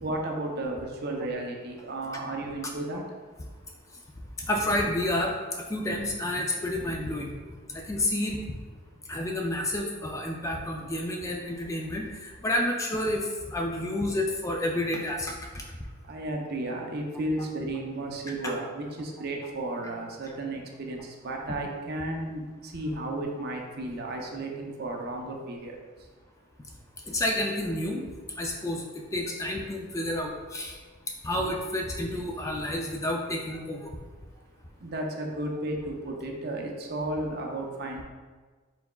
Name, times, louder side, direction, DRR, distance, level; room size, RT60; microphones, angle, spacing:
voice 1, 0.0-3.0 16.1-25.8 34.8-38.0, right 1 dB, 50° right, 1 dB, 0.6 m, -33 dB
voice 2, 4.4-7.4 7.7-8.4 9.1-15.6 17.4-17.5 18.4-18.5 27.1-28.0 28.4-28.8 29.1-30.8 31.2-34.0, left 1 dB, 15° left, 1 dB, 0.3 m, -30 dB
4.4 x 4.1 x 2.2 m, 1.4 s
head